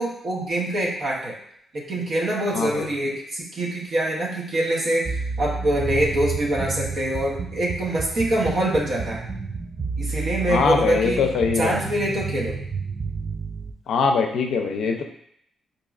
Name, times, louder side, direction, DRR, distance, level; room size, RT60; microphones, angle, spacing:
voice 1, 0.0-1.3 1.7-9.2 10.0-11.3 11.5-12.5, right 1 dB, 65° right, -3 dB, 0.7 m, -24 dB
voice 2, 2.5-2.9 10.5-11.8 13.9-15.0, left 5 dB, 75° left, 3 dB, 0.4 m, -22 dB
sound 1, 5.0-13.7, right 4 dB, 35° right, 0.3 m, -30 dB
4.0 x 2.6 x 2.4 m, 0.70 s
supercardioid pair, 65°, 0 cm